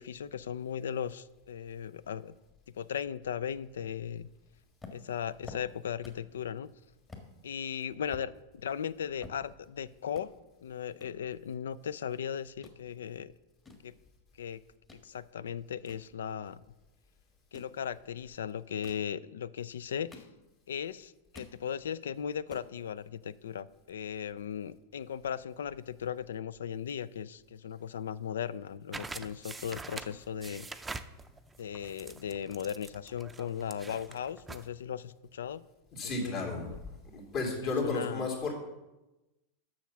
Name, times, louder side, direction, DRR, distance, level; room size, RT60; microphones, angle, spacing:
voice 1, 0.0-2.3 2.7-4.3 4.9-6.7 7.4-10.3 10.6-13.3 13.8-13.9 14.4-14.6 14.9-16.6 17.5-20.3 20.7-30.7 31.6-35.6 36.0-36.8 37.6-38.3, left 8 dB, 80° left, 19 dB, 0.3 m, -37 dB
sound 1, 4.8-6.4 6.7-6.8 7.1-7.3 7.8-9.8 10.1-10.3 11.0-12.2 12.4-12.8 13.4-15.1 15.5-16.8 17.4-17.8 18.6-19.1 19.7-20.7 21.0-21.6 22.0-22.1 22.3-22.7, left 3 dB, 20° left, 1.6 m, -51 dB
sound 2, 28.9-34.7, right 3 dB, 15° right, 0.5 m, -45 dB
voice 2, 35.9-36.7 37.1-38.5, left 3 dB, 45° left, -1 dB, 2.6 m, -33 dB
7.2 x 6.3 x 5.8 m, 1.0 s
hypercardioid pair, 100°, 0 cm